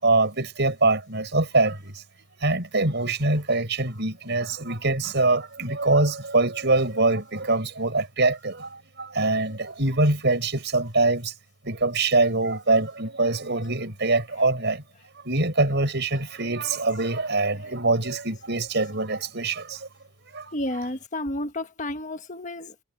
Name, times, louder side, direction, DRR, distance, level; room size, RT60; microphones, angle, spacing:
voice 1, 0.0-2.0 2.4-11.3 11.6-14.8 15.2-19.9 20.3-20.5, right 2 dB, 55° right, 6.1 m, -24 dB
voice 2, 20.5-22.8, left 1 dB, 35° left, 1.5 m, -31 dB
head